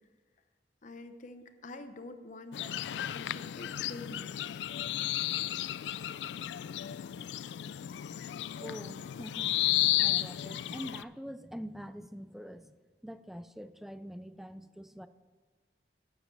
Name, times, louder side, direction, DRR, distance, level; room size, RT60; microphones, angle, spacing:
voice 1, 0.8-4.3, left 2 dB, 45° left, 8 dB, 0.8 m, -47 dB
sound 1, 2.5-11.0, left 14 dB, 75° left, 0.3 m, -33 dB
voice 2, 8.6-9.6 10.0-12.8 13.0-15.1, equal, ahead, 12 dB, 0.4 m, -44 dB
9.3 x 7.3 x 6.9 m, 1.4 s
head